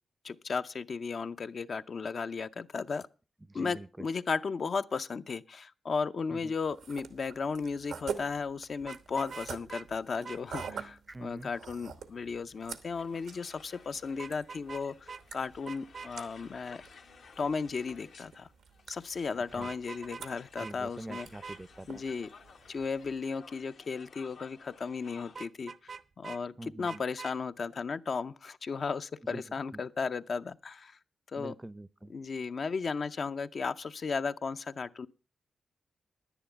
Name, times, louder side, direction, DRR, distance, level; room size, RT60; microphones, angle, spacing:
voice 1, 0.2-3.1 3.5-16.8 17.4-18.5 18.9-21.3 21.9-22.3 22.7-31.0 31.3-31.5 32.1-35.1, left 5 dB, 60° left, 0.6 m, -35 dB
voice 2, 3.5-4.1 6.3-6.5 11.1-11.5 19.6-19.7 20.6-22.0 26.6-27.0 29.3-29.4 29.7-29.8 31.4-32.1, right 2 dB, 20° right, 0.5 m, -45 dB
sound 1, 6.6-23.2, right 6 dB, 90° right, 1.1 m, -47 dB
Vehicle horn car horn honking, 8.8-9.9 10.2-10.7 14.2-14.8 15.1-15.2 15.7-16.1 19.5-20.3 20.6-20.7 21.1-21.6 25.4-26.4 26.9-27.4, right 5 dB, 60° right, 0.6 m, -43 dB
sound 2, 12.9-25.4, left 5 dB, 80° left, 1.3 m, -56 dB
10.0 x 10.0 x 5.7 m
cardioid pair, 70°, 0 cm